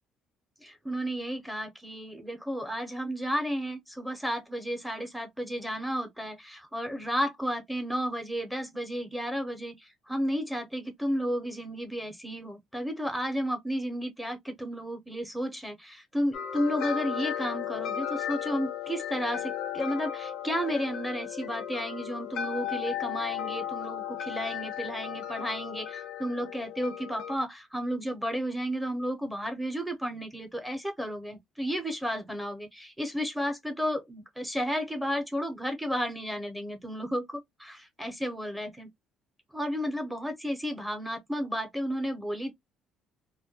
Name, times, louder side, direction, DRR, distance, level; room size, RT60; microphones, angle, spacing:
voice 1, 0.6-38.9 39.5-42.5, equal, ahead, 0.6 m, -33 dB
sound 1, 16.3-27.4, left 10 dB, 65° left, 0.4 m, -35 dB
2.2 x 2.1 x 2.7 m
cardioid pair, 130°, 0 cm